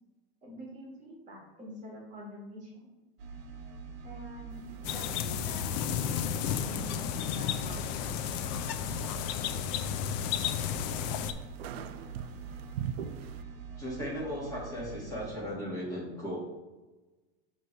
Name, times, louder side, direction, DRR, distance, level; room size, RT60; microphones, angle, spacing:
voice 1, 0.4-2.9 4.0-5.6 5.9-8.2 9.1-9.2, equal, 25° right, -3 dB, 1.6 m, -46 dB
sound 1, 3.2-15.3, right 5 dB, 60° right, 0.9 m, -45 dB
sound 2, 4.5-13.4, right 8 dB, 90° right, 0.5 m, -45 dB
sound 3, 4.8-11.3, left 9 dB, 50° left, 0.5 m, -33 dB
voice 2, 13.8-16.4, equal, 10° left, -5 dB, 1.8 m, -36 dB
6.6 x 3.1 x 5.3 m, 1.2 s
supercardioid pair, 145°, 30 cm